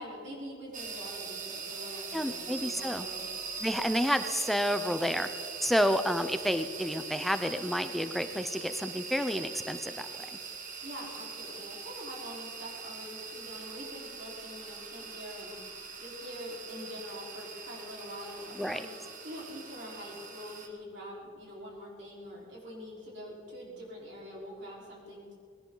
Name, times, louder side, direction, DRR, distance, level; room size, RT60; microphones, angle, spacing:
voice 1, 0.0-3.2 10.8-18.9 19.2-25.3, equal, 60° right, -4 dB, 4.4 m, -44 dB
sound 1, 0.7-20.7, right 5 dB, 40° right, 1.5 m, -42 dB
voice 2, 2.1-3.1 3.6-5.3 5.6-10.3 18.5-18.9, equal, ahead, 9 dB, 0.6 m, -30 dB
20.0 x 18.0 x 3.9 m, 2.4 s
head